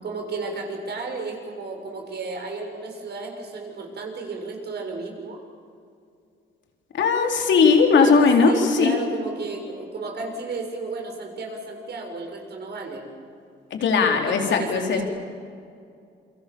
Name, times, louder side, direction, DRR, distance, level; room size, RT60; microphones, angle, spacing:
voice 1, 0.0-5.4 8.0-13.1 14.1-15.0, right 3 dB, 55° right, 2 dB, 6.8 m, -33 dB
voice 2, 6.9-9.0 13.7-15.0, left 5 dB, 70° left, 3 dB, 4.2 m, -18 dB
28.5 x 24.0 x 7.2 m, 2.4 s
cardioid pair, 90°, 20 cm